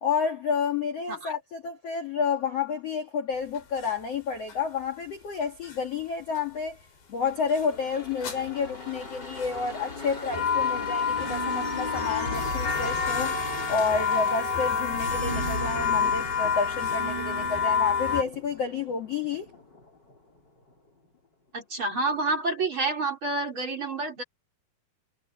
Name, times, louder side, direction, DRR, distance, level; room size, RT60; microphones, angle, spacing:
voice 1, 0.0-6.8 7.1-13.4 13.7-19.5, left 5 dB, 45° left, 2.3 m, -30 dB
sound 1, 3.6-3.9 4.5-4.6 5.4-5.8 6.4-6.5 7.3-7.6 8.2-8.4 9.1-9.6 10.1-18.2, left 5 dB, 80° left, 7.6 m, -28 dB
sound 2, 7.2-20.7 21.0-21.1, left 2 dB, 25° left, 4.9 m, -39 dB
voice 2, 21.5-24.2, right 3 dB, 30° right, 5.2 m, -28 dB
omnidirectional pair, 4.8 m